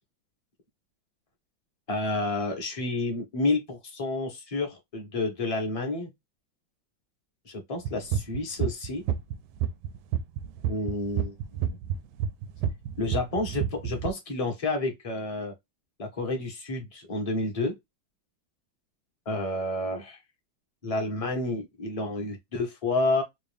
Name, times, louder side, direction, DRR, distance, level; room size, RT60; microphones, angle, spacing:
voice 1, 1.9-6.1 7.4-9.0 10.7-11.3 11.6-11.8 13.0-15.5 16.0-17.7 19.3-20.2 20.8-23.2, left 2 dB, 30° left, 0.6 m, -30 dB
sound 1, 7.8-14.1, right 9 dB, 80° right, 1.3 m, -29 dB
3.6 x 2.5 x 3.3 m
omnidirectional pair, 2.2 m